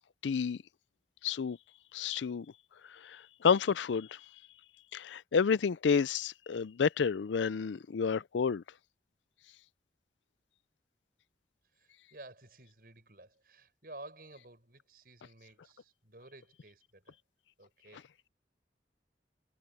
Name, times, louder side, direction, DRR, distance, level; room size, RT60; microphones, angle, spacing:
voice 1, 0.2-0.6 1.2-1.6 1.9-2.5 3.0-4.2 4.9-8.6, left 6 dB, 85° left, 0.4 m, -30 dB
voice 2, 11.7-17.2 17.6-18.0, right 2 dB, 55° right, 6.6 m, -53 dB
head